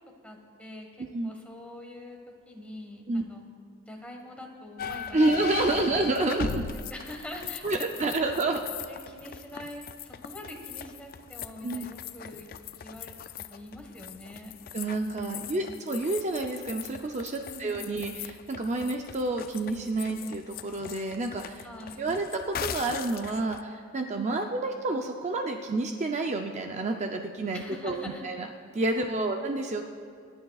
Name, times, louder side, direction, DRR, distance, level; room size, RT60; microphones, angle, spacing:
voice 1, 0.2-2.2 2.5-3.4 3.9-5.4 5.7-6.1 6.9-7.9 8.1-8.4 8.9-12.5 12.8-14.6 15.3-15.8 17.4-18.0 21.6-22.1 24.1-24.6 27.5-28.3 29.0-29.4, left 1 dB, 5° left, 1 dB, 1.4 m, -44 dB
sound 1, 4.8-23.6, left 7 dB, 45° left, 0.4 m, -40 dB
voice 2, 5.1-6.7 7.6-8.6 11.6-11.9 14.7-21.7 22.0-28.5 28.7-29.9, right 2 dB, 35° right, 3 dB, 0.5 m, -29 dB
26.5 x 11.5 x 2.4 m, 2.2 s
head